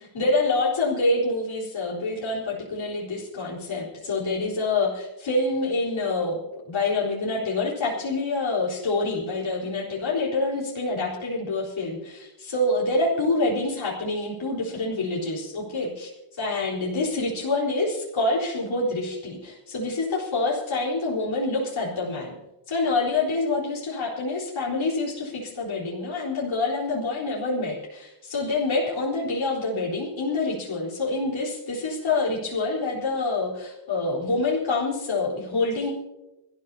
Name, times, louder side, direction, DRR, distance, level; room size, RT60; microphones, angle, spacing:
voice 1, 0.0-16.1 16.4-22.4 22.7-35.9, left 2 dB, 75° left, -6 dB, 4.1 m, -26 dB
25.0 x 14.0 x 2.8 m, 0.97 s
wide cardioid pair, 95°, 47 cm